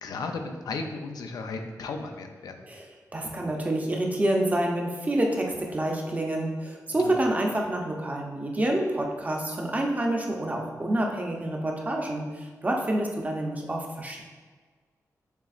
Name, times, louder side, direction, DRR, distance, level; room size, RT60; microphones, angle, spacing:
voice 1, 0.0-2.5 6.9-7.2, left 3 dB, 90° left, 4 dB, 0.4 m, -35 dB
voice 2, 3.1-14.2, right 1 dB, 25° right, 0 dB, 0.6 m, -28 dB
6.8 x 3.0 x 2.4 m, 1.4 s
wide cardioid pair, 105°, 6 cm